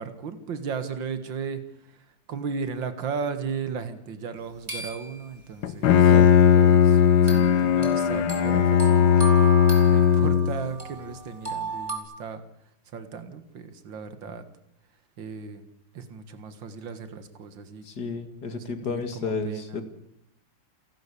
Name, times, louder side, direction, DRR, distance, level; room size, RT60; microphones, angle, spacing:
voice 1, 0.0-1.6 1.9-6.1 6.5-9.6 9.9-12.4 12.9-14.4 15.2-15.7 15.9-17.9 18.4-19.8, right 6 dB, 80° right, 10 dB, 2.5 m, -36 dB
sound 1, 4.7-5.3 7.3-12.0, right 1 dB, 20° right, 3.7 m, -34 dB
Bowed string instrument, 5.6-10.7, left 8 dB, 80° left, 1.7 m, -18 dB
voice 2, 6.1-6.4 17.8-19.8, left 4 dB, 60° left, 8 dB, 2.9 m, -31 dB
29.0 x 11.5 x 8.5 m, 0.78 s
omnidirectional pair, 2.0 m